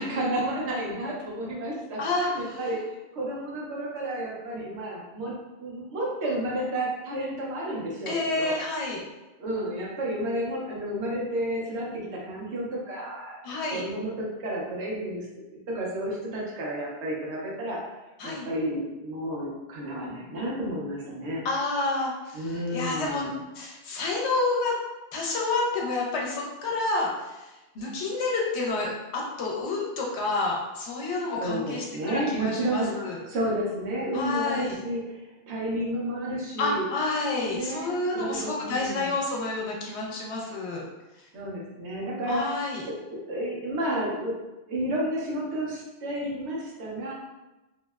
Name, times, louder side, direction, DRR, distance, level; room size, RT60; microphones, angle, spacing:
voice 1, 0.0-2.0 2.3-2.8 3.1-5.3 5.6-8.6 9.4-13.4 13.7-15.3 15.7-17.8 18.2-21.4 22.3-23.4 31.4-32.9 33.3-36.9 37.5-39.1 41.3-44.4 44.7-47.1, right 1 dB, 80° right, -4 dB, 1.0 m, -31 dB
voice 2, 2.0-2.6 8.1-9.0 13.4-13.8 18.2-18.5 21.4-24.8 25.1-33.2 34.1-34.8 36.6-40.8 42.3-42.8, left 3 dB, 90° left, -2 dB, 0.9 m, -29 dB
2.8 x 2.0 x 2.2 m, 1.1 s
omnidirectional pair, 1.1 m